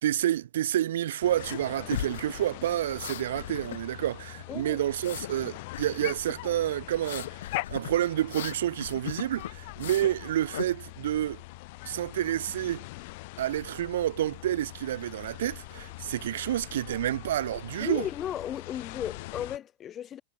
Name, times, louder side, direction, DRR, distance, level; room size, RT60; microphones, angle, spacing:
voice 1, 0.0-7.4 7.7-11.4 11.8-12.8 13.4-18.1, right 12 dB, 75° right, 0.7 m, -29 dB
sound 1, 1.2-19.6, left 24 dB, 45° left, 2.8 m, -43 dB
sound 2, 1.4-1.6 1.9-4.1 4.4-5.3 5.7-6.4 6.9-10.1 10.5-10.7, left 12 dB, 80° left, 2.6 m, -38 dB
voice 2, 4.5-4.8 17.8-20.2, left 10 dB, 20° left, 1.9 m, -35 dB
supercardioid pair, 175°, 0 cm